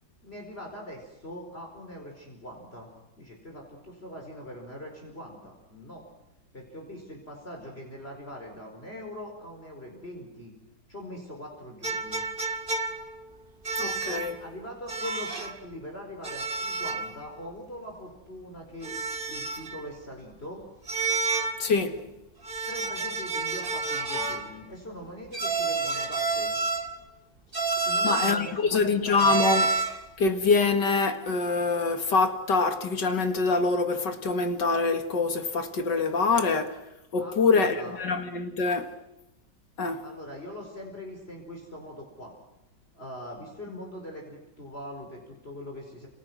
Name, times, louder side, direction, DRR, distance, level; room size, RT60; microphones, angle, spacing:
voice 1, 0.2-2.9 3.2-6.0 6.5-10.5 10.9-12.2 14.4-19.0 19.3-20.6 22.7-26.6 27.8-29.4 37.2-38.0 40.0-42.3 42.9-46.1, equal, 35° left, 5.2 m, -42 dB
sound 1, 11.8-13.2 13.7-14.4 14.9-15.6 16.2-17.2 17.5-17.6 18.8-19.8 20.9-21.7 22.4-24.5 25.3-27.0 27.5-28.5 29.2-30.1, right 4 dB, 30° right, 2.1 m, -29 dB
voice 2, 13.8-14.4 21.6-22.1 28.0-29.7 30.2-36.8 37.1-38.9 39.8-40.1, left 4 dB, 75° left, 2.5 m, -25 dB
30.0 x 27.5 x 6.2 m
omnidirectional pair, 1.9 m